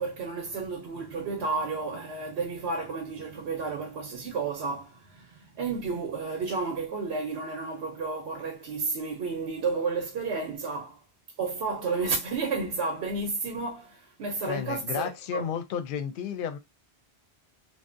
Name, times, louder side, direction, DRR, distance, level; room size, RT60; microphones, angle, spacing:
voice 1, 0.0-11.0 11.4-15.5, right 4 dB, 90° right, 0.9 m, -32 dB
voice 2, 14.4-16.6, left 8 dB, 60° left, 0.6 m, -32 dB
2.6 x 2.1 x 2.4 m
omnidirectional pair, 1.1 m